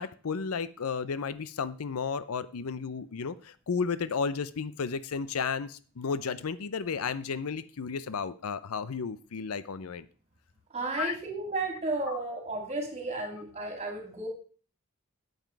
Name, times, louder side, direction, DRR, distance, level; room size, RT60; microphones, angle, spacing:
voice 1, 0.0-10.1 11.0-11.2 12.1-12.2, left 5 dB, 70° left, 15 dB, 0.6 m, -33 dB
voice 2, 10.7-14.3, right 2 dB, 30° right, 3 dB, 2.9 m, -33 dB
8.9 x 8.0 x 4.6 m, 0.40 s
head